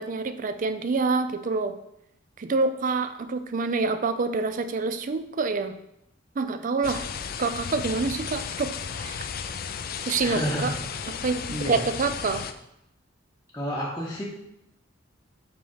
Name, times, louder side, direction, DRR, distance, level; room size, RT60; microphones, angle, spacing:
voice 1, 0.0-1.7 2.4-5.8 6.4-7.0 7.4-9.2 10.1-10.7 11.2-12.4, right 4 dB, 45° right, 10 dB, 0.4 m, -27 dB
sound 1, 6.8-12.5, left 7 dB, 50° left, 0.4 m, -34 dB
voice 2, 10.2-10.8 11.5-11.8 13.5-14.2, equal, 15° left, -6 dB, 0.9 m, -30 dB
5.3 x 4.2 x 5.6 m, 0.82 s
head